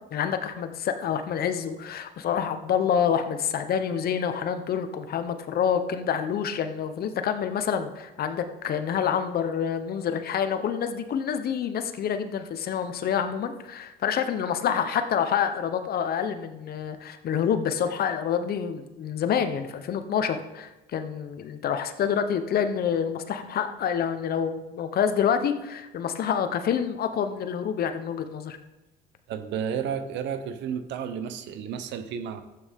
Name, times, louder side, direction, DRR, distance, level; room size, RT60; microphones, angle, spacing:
voice 1, 0.1-28.6, left 8 dB, 55° left, 9 dB, 1.0 m, -27 dB
voice 2, 29.3-32.4, right 7 dB, 75° right, 10 dB, 1.0 m, -32 dB
13.0 x 8.6 x 3.7 m, 1.0 s
cardioid pair, 95°, 19 cm